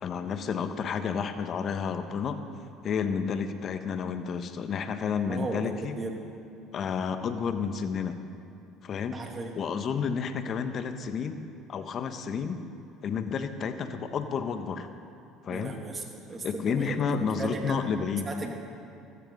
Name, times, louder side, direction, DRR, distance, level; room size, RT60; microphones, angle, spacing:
voice 1, 0.0-2.4 2.8-6.0 6.7-8.2 8.8-9.2 9.5-11.4 11.7-12.6 13.0-14.9 15.4-15.8 16.4-18.3, left 6 dB, 50° left, 9 dB, 1.2 m, -31 dB
voice 2, 5.3-6.1 9.1-9.6 15.5-17.8 18.3-18.5, right 3 dB, 30° right, 2 dB, 2.6 m, -36 dB
15.0 x 14.0 x 5.4 m, 2.7 s
hypercardioid pair, 75°, 0 cm